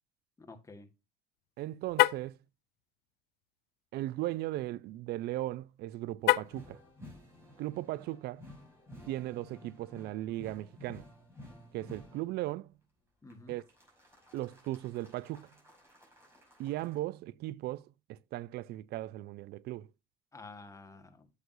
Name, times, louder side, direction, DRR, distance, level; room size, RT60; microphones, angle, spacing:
voice 1, 0.4-0.9 13.2-13.5 20.3-21.3, left 3 dB, 20° left, 1.4 m, -50 dB
voice 2, 1.6-2.4 3.9-6.8 7.6-8.4 9.0-11.1 11.7-12.7 13.5-13.6 14.3-15.5 16.6-19.9, right 16 dB, 75° right, 0.4 m, -37 dB
Car, 1.9-2.3 6.2-6.7, left 16 dB, 75° left, 0.4 m, -26 dB
sound 1, 6.4-12.4 13.3-17.0, left 1 dB, 15° right, 5.4 m, -54 dB
8.1 x 8.0 x 2.6 m
cardioid pair, 110°, 17 cm